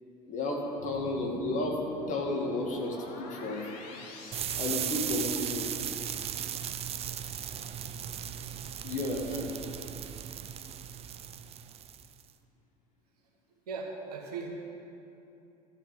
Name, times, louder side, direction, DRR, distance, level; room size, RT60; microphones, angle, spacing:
voice 1, 0.3-1.8 2.1-3.7 4.3-5.7 8.8-9.5, left 2 dB, 40° left, 0 dB, 2.2 m, -33 dB
sound 1, 0.8-5.5, left 3 dB, 55° left, 1.4 m, -46 dB
sound 2, 4.3-12.2, right 9 dB, 30° right, 0.6 m, -37 dB
voice 2, 13.7-14.5, right 4 dB, 70° right, -1 dB, 1.8 m, -38 dB
13.0 x 5.5 x 9.2 m, 2.8 s
figure-of-eight pair, 70°, 20 cm